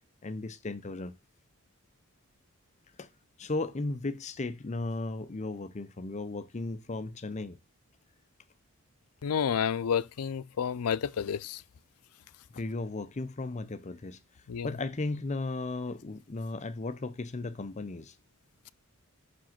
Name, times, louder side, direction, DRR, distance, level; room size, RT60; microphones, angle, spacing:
voice 1, 0.2-1.1 3.0-3.1 3.4-7.6 12.5-14.2 14.6-18.2, left 2 dB, 30° left, 0.6 m, -35 dB
voice 2, 9.2-11.6 14.5-14.7, left 7 dB, 85° left, 0.5 m, -30 dB
6.1 x 5.2 x 5.7 m
head